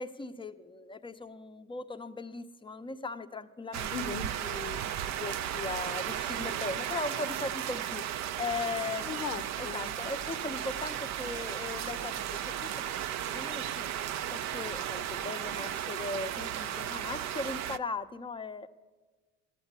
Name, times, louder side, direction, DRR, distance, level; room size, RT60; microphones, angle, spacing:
voice 1, 0.0-4.8 5.2-8.0 8.4-9.1 9.6-12.9 13.3-13.9 14.3-18.7, left 3 dB, 10° left, 9 dB, 0.7 m, -38 dB
sound 1, 3.7-17.8, right 10 dB, 40° right, 0.5 m, -35 dB
voice 2, 3.9-4.3 9.0-9.9, left 6 dB, 85° left, 9 dB, 0.7 m, -38 dB
12.5 x 7.9 x 8.3 m, 1.3 s
hypercardioid pair, 60°, 44 cm